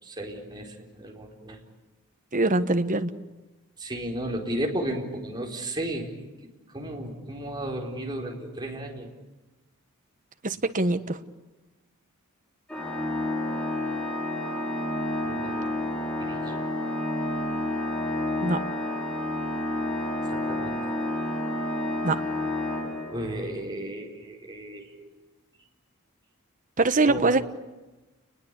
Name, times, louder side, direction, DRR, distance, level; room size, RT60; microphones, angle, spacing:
voice 1, 0.0-1.6 3.8-6.1 6.7-9.1 15.2-15.6 16.2-16.6 20.3-20.8 23.1-25.1 27.1-27.4, right 1 dB, 20° right, 0 dB, 4.6 m, -34 dB
voice 2, 2.3-3.1 10.4-11.2 18.4-18.6 22.0-22.2 26.8-27.4, right 2 dB, 35° right, 9 dB, 1.2 m, -23 dB
Organ, 12.7-23.5, left 1 dB, 5° left, 3.1 m, -30 dB
30.0 x 21.0 x 8.4 m, 1.1 s
head